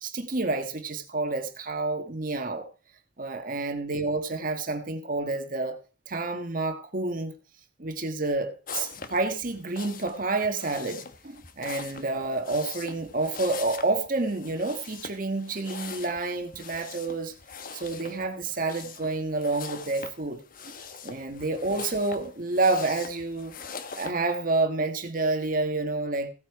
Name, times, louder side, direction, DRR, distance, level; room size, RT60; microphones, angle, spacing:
voice 1, 0.0-2.7 3.2-5.8 6.1-7.3 7.8-17.3 17.7-20.8 21.0-23.5 23.9-26.3, right 3 dB, 45° right, 1.5 m, -29 dB
sound 1, 8.7-24.1, left 6 dB, 50° left, 1.1 m, -42 dB
16.0 x 8.4 x 4.7 m
head